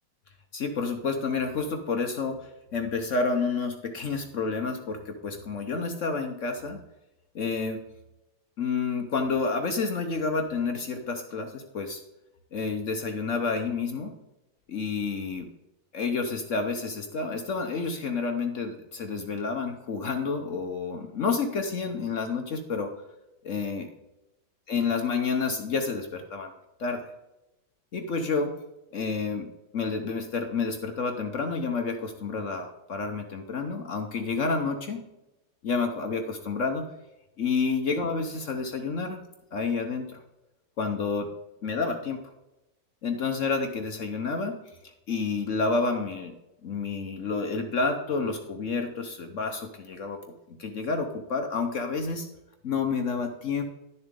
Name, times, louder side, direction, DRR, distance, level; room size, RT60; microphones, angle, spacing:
voice 1, 0.5-6.8 7.3-7.8 8.6-12.0 12.5-14.1 14.7-15.5 15.9-22.9 23.4-23.9 24.7-26.5 26.8-27.1 27.9-28.6 28.9-35.0 35.6-36.9 37.4-39.2 39.5-40.2 40.8-41.3 41.6-42.3 43.0-46.4 46.6-50.2 50.5-52.3 52.6-53.6, left 4 dB, 55° left, 5 dB, 1.0 m, -29 dB
11.5 x 6.8 x 3.6 m, 0.95 s
omnidirectional pair, 2.1 m